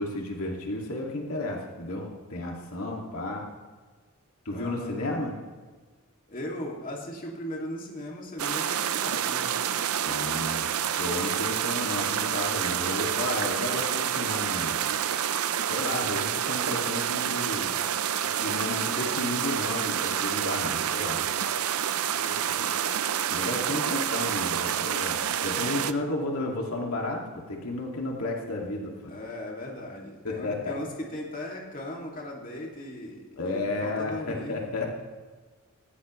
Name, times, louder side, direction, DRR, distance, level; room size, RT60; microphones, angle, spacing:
voice 1, 0.0-3.4 4.5-5.3 10.0-10.7 11.0-14.9 15.7-17.7 18.2-21.2 23.3-29.1 30.2-30.7 33.4-34.9, left 2 dB, 75° left, 0 dB, 2.3 m, -32 dB
voice 2, 4.5-5.0 6.3-9.7 22.2-22.7 29.1-34.6, left 1 dB, 40° left, -1 dB, 2.4 m, -38 dB
sound 1, 8.4-25.9, right 9 dB, 75° right, 0.6 m, -28 dB
18.5 x 16.0 x 3.2 m, 1.4 s
head